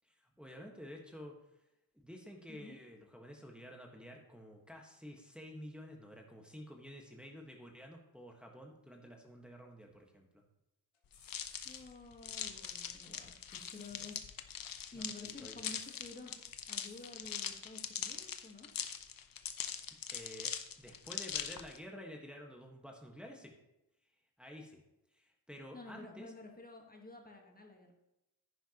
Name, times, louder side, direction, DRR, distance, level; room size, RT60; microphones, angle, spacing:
voice 1, 0.0-1.4 2.0-10.4 14.0-14.1 14.9-15.7 20.1-23.5 24.4-24.8 25.1-26.3, equal, ahead, 0 dB, 1.4 m, -51 dB
sound 1, 10.9-12.5 12.9-14.3 14.6-17.2, left 6 dB, 85° left, 2.3 m, -62 dB
sound 2, 11.2-21.8, left 8 dB, 60° left, 0.9 m, -42 dB
voice 2, 11.6-14.5 14.9-16.3 16.7-18.7 25.7-27.9, left 2 dB, 20° left, 1 dB, 1.4 m, -51 dB
10.0 x 10.0 x 3.0 m, 0.90 s
cardioid pair, 95°, 40 cm